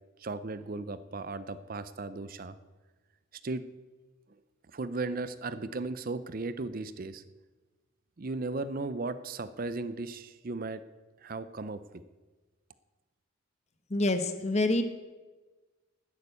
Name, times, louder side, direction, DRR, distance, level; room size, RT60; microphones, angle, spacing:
voice 1, 0.2-2.6 3.3-3.6 4.7-7.2 8.2-10.8 11.2-12.0, right 3 dB, 40° right, 13 dB, 0.5 m, -36 dB
voice 2, 13.9-14.8, left 2 dB, 30° left, 9 dB, 1.0 m, -26 dB
11.5 x 9.7 x 8.2 m, 1.3 s
head